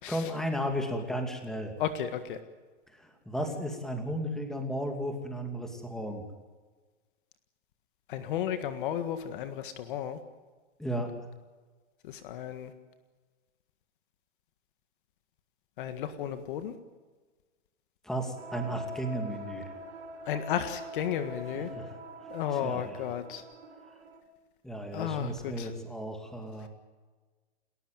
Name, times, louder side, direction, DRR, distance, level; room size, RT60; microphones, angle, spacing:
voice 1, 0.1-1.7 2.9-6.2 10.8-11.1 18.0-19.7 21.5-23.0 24.6-26.7, equal, ahead, 4 dB, 2.5 m, -34 dB
voice 2, 1.8-2.4 8.1-10.2 12.0-12.7 15.8-16.7 20.3-21.7 22.3-23.4 24.9-25.7, left 9 dB, 45° left, 9 dB, 1.7 m, -33 dB
sound 1, 18.4-24.2, right 1 dB, 70° right, 3.9 m, -44 dB
29.0 x 14.0 x 9.2 m, 1.4 s
hypercardioid pair, 150°, 36 cm